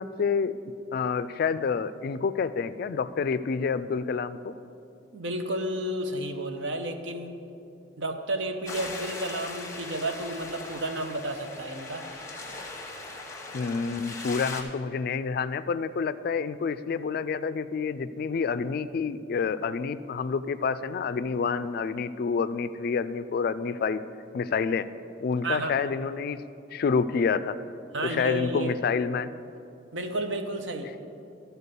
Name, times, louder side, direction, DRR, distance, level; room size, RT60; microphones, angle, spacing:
voice 1, 0.0-4.5 13.5-24.0 24.3-24.9 25.2-26.4 26.7-27.6 28.0-29.3, left 5 dB, 50° left, 14 dB, 0.3 m, -28 dB
voice 2, 5.1-7.4 8.0-12.1 25.4-25.9 27.9-28.7 29.9-31.1, right 1 dB, 75° right, 6 dB, 0.8 m, -32 dB
sound 1, 8.7-14.6, left 2 dB, 15° left, 1.0 m, -39 dB
13.0 x 4.5 x 6.7 m, 2.6 s
head